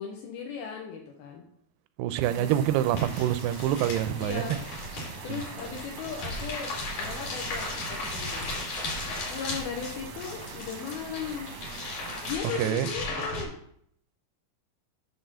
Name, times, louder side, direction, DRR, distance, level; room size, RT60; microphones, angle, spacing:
voice 1, 0.0-1.4 2.3-2.5 4.2-4.6 5.2-8.6 9.3-11.5 12.2-13.5, left 6 dB, 80° left, 0 dB, 2.8 m, -37 dB
voice 2, 2.0-4.6 5.3-5.4 12.6-12.9, right 12 dB, 85° right, 13 dB, 2.5 m, -26 dB
sound 1, 2.2-12.4, right 6 dB, 70° right, 1.6 m, -43 dB
sound 2, 2.8-13.4, left 2 dB, 50° left, 3.9 m, -36 dB
10.0 x 3.8 x 6.8 m, 0.67 s
omnidirectional pair, 4.6 m